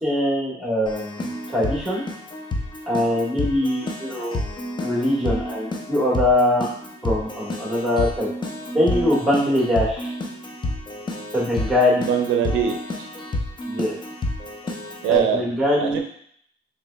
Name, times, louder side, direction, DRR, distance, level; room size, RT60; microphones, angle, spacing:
voice 1, 0.0-1.2 1.5-2.0 2.9-4.4 4.8-6.7 7.0-8.3 8.7-10.1 11.3-12.1 13.6-13.9 15.1-16.0, left 1 dB, 5° right, -5 dB, 1.4 m, -22 dB
Keyboard (musical), 0.9-15.2, left 1 dB, 25° left, 0.6 m, -30 dB
voice 2, 12.1-12.8 15.0-15.5 15.8-16.0, right 9 dB, 80° right, 5 dB, 0.5 m, -21 dB
3.8 x 3.1 x 2.2 m, 0.66 s
cardioid pair, 90°, 20 cm